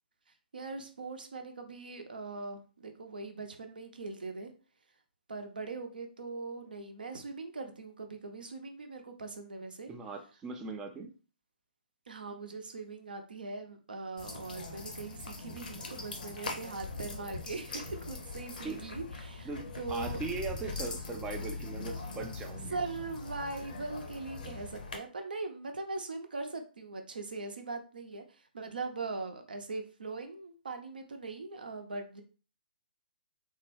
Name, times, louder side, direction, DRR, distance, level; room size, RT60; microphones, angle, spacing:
voice 1, 0.5-4.5 5.3-9.9 12.1-19.5 19.8-20.2 22.7-32.2, right 3 dB, 65° right, 6 dB, 0.7 m, -41 dB
voice 2, 9.9-11.1 18.6-18.8 19.4-22.8, right 4 dB, 10° right, 4 dB, 0.4 m, -39 dB
sound 1, 14.2-25.0, left 3 dB, 60° left, 0.7 m, -41 dB
3.5 x 2.2 x 3.2 m, 0.37 s
figure-of-eight pair, 125°, 5 cm